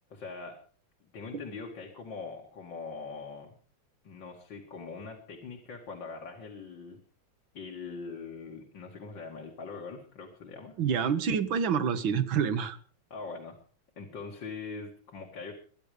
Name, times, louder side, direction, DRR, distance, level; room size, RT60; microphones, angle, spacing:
voice 1, 0.1-0.6 1.1-3.6 4.0-7.0 7.5-10.8 13.1-13.6 14.0-15.5, left 4 dB, 70° left, 1 dB, 3.0 m, -42 dB
voice 2, 10.8-12.8, right 7 dB, 80° right, 12 dB, 2.1 m, -27 dB
23.5 x 9.9 x 5.2 m, 0.44 s
omnidirectional pair, 2.1 m